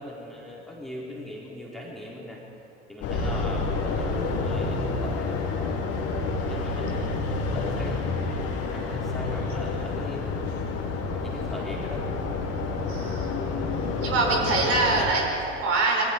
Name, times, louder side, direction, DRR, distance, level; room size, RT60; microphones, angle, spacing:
voice 1, 0.0-2.4 2.9-5.8 6.5-10.4 11.1-12.0, left 1 dB, ahead, -4 dB, 4.6 m, -40 dB
sound 1, 3.0-15.1, left 3 dB, 45° left, 3.8 m, -29 dB
voice 2, 12.9-13.4 14.0-16.1, right 3 dB, 45° right, -1 dB, 5.5 m, -25 dB
29.0 x 22.0 x 4.8 m, 2.8 s
figure-of-eight pair, 70°, 33 cm